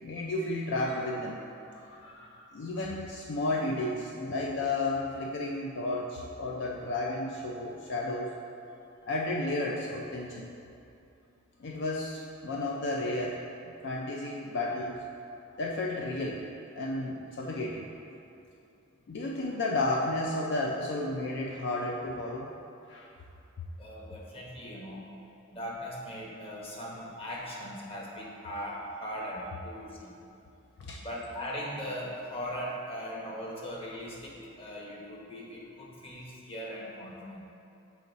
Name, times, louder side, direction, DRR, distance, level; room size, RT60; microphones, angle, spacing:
voice 1, 0.0-1.4 1.7-8.3 9.0-10.5 11.6-13.4 13.8-15.0 15.6-16.5 16.8-17.9 19.1-22.5 22.9-23.1 30.8-31.0, left 2 dB, 60° left, -1 dB, 0.4 m, -32 dB
voice 2, 23.8-25.0 25.5-30.1 31.0-37.4, equal, 30° left, -3 dB, 1.0 m, -39 dB
6.5 x 4.5 x 3.9 m, 2.7 s
head